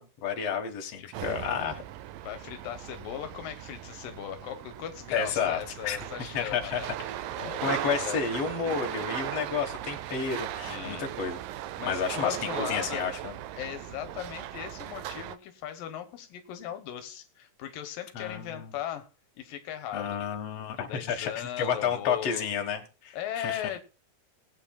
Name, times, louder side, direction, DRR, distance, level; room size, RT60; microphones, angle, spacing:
voice 1, 0.0-1.8 5.1-6.9 7.4-11.4 11.9-13.3 18.1-18.7 19.9-23.6, left 6 dB, 50° left, 2.5 m, -31 dB
voice 2, 1.0-1.4 2.2-8.9 10.7-11.1 11.8-13.1 13.6-19.1 19.4-20.2 20.9-22.5 23.1-23.8, left 10 dB, 80° left, 2.7 m, -38 dB
sound 1, 1.1-15.4, right 12 dB, 85° right, 2.4 m, -38 dB
20.5 x 8.9 x 2.4 m
omnidirectional pair, 3.9 m